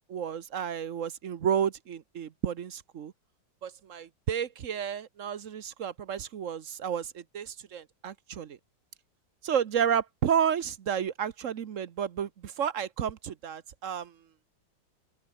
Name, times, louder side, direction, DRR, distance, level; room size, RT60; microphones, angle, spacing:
voice 1, 0.1-3.1 3.6-8.6 9.4-14.1, right 8 dB, 50° right, 1.0 m, -31 dB
open air
omnidirectional pair, 2.1 m